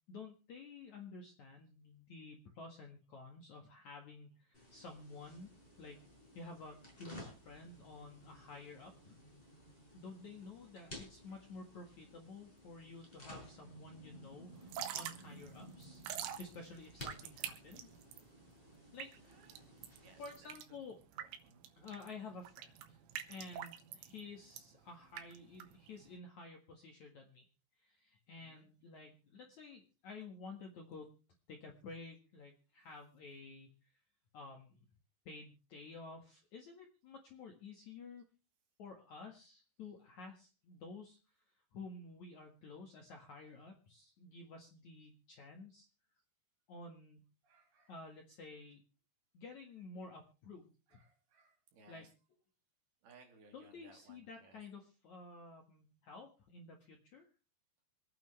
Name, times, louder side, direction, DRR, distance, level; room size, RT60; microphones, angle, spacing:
voice 1, 0.0-5.5 5.8-6.0 6.3-9.2 9.9-16.0 16.4-17.9 18.9-19.4 20.1-21.0 21.8-23.0 23.3-27.4 27.8-31.1 31.5-33.7 34.3-34.8 35.3-38.2 38.8-41.2 41.7-45.9 46.7-47.3 47.9-48.8 49.3-51.0 51.9-52.1 53.5-57.3, left 3 dB, 55° left, 3 dB, 2.2 m, -52 dB
sound 1, 4.5-20.4, equal, 10° left, 5.3 m, -56 dB
voice 2, 10.7-11.5 19.1-19.7 20.0-20.8 21.1-21.7 23.3-23.6 28.3-28.7 47.4-48.0 50.9-52.2 53.0-54.7, right 3 dB, 60° right, 4 dB, 3.9 m, -65 dB
Drip / Trickle dribble, 14.6-26.2, right 10 dB, 90° right, 3.7 m, -47 dB
26.0 x 9.2 x 3.2 m, 0.33 s
omnidirectional pair, 5.4 m